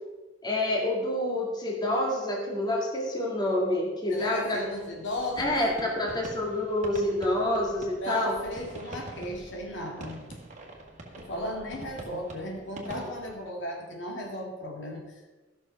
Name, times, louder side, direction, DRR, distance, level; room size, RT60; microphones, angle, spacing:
voice 1, 0.4-4.6 5.4-8.4 12.9-13.0, left 1 dB, 20° left, -2 dB, 1.9 m, -28 dB
voice 2, 4.1-5.6 8.0-10.2 11.1-15.3, left 1 dB, 65° left, 0 dB, 2.3 m, -35 dB
sound 1, 4.8-13.4, right 1 dB, 40° right, 1.8 m, -45 dB
14.0 x 6.4 x 5.7 m, 1.2 s
head